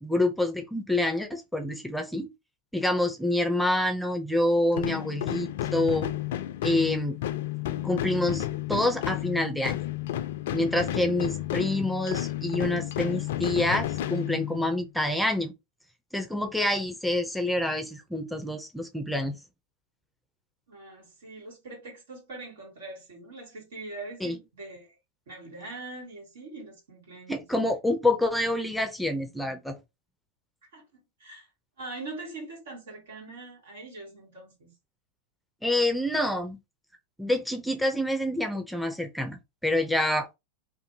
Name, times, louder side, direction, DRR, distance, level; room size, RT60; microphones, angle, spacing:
voice 1, 0.0-2.3 2.7-6.1 6.6-7.2 7.8-9.8 10.5-15.5 16.1-19.4 24.2-24.4 27.3-29.8 35.6-36.6 37.2-40.3, left 1 dB, ahead, 0.5 m, -27 dB
sound 1, 4.7-14.9, left 13 dB, 70° left, 0.3 m, -32 dB
voice 2, 10.9-11.2 20.7-25.0 25.3-27.4 30.7-31.5 31.8-34.7, right 2 dB, 80° right, 1.8 m, -42 dB
2.6 x 2.5 x 2.7 m
hypercardioid pair, 100°, 0 cm